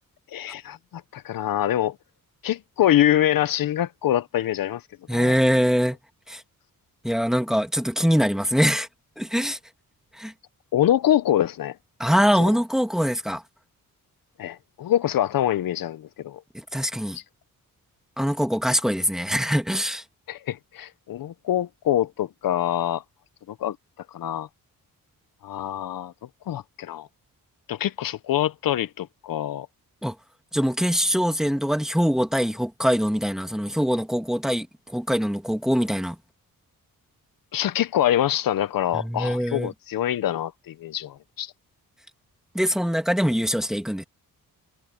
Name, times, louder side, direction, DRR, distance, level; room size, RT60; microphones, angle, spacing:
voice 1, 0.3-2.0 2.4-4.8 5.1-5.3 10.7-11.7 12.4-12.5 14.4-16.4 17.1-17.2 20.3-23.0 23.6-23.8 24.1-24.5 25.4-26.1 26.5-27.1 27.7-29.7 37.5-41.5, left 12 dB, 75° left, 0.7 m, -25 dB
voice 2, 5.1-6.0 6.3-6.4 7.0-8.9 9.2-9.6 10.2-10.3 12.0-13.4 16.7-17.2 18.2-20.0 30.0-30.1 30.5-36.2 38.9-39.7 42.5-44.0, equal, ahead, 2.2 m, -23 dB
wide cardioid pair, 140°, 34 cm